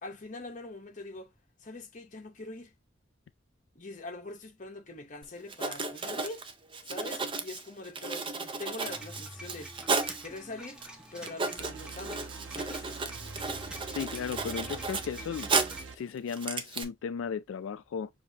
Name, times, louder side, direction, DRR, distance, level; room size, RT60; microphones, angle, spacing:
voice 1, 0.0-1.3 1.6-2.7 3.7-6.4 6.8-9.7 10.2-10.8 11.1-12.9, left 2 dB, 40° left, 0.9 m, -43 dB
Writing, 5.2-5.3 5.5-10.3 10.8-10.9 11.2-15.9 16.3-16.8, right 4 dB, 25° right, 0.5 m, -34 dB
sound 1, 8.8-15.8, equal, 5° right, 1.6 m, -47 dB
sound 2, 11.6-16.0, right 4 dB, 80° right, 0.7 m, -46 dB
voice 2, 13.9-15.5 15.9-18.1, left 6 dB, 85° left, 0.3 m, -35 dB
6.9 x 2.6 x 2.7 m
head